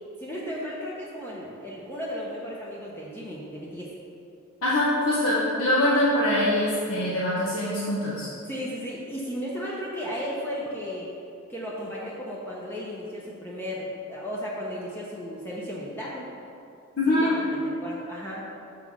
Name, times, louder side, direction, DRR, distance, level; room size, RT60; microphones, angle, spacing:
voice 1, 0.2-3.9 8.5-11.1 11.5-16.3 17.1-18.5, equal, 10° left, -5 dB, 0.7 m, -35 dB
voice 2, 4.6-8.3 17.0-17.3, left 1 dB, 75° left, -7 dB, 1.1 m, -23 dB
6.0 x 4.7 x 5.9 m, 2.6 s
head